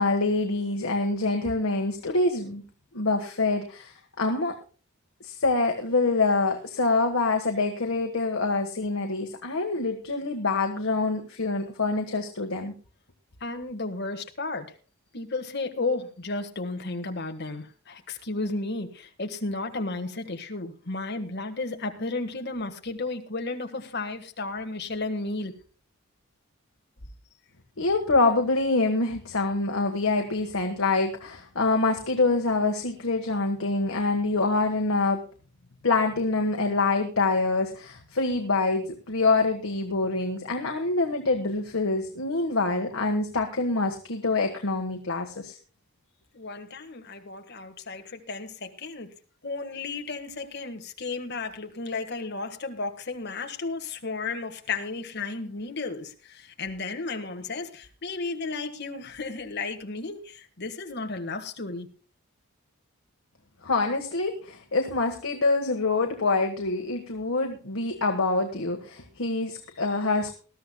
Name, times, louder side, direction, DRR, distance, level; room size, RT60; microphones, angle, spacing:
voice 1, 0.0-2.6 2.9-4.6 5.2-12.7 27.8-35.2 35.8-45.6 63.6-70.3, left 3 dB, 70° left, 3 dB, 1.4 m, -25 dB
voice 2, 13.4-14.7 15.1-25.5 46.3-49.1 49.4-61.9, left 3 dB, 50° left, 5 dB, 1.5 m, -33 dB
20.0 x 12.5 x 2.2 m, 0.37 s
head